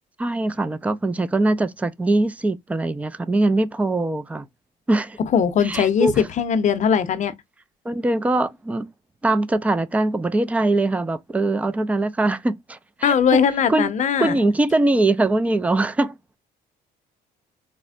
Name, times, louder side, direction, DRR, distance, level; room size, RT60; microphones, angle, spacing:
voice 1, 0.2-4.5 4.9-5.2 5.6-6.2 7.9-8.9 9.2-13.4 13.7-13.9 14.2-16.2, right 2 dB, 10° right, 0.3 m, -22 dB
voice 2, 5.3-7.3 13.0-14.4, left 7 dB, 45° left, 0.6 m, -20 dB
4.2 x 2.0 x 2.4 m
cardioid pair, 110°, 17 cm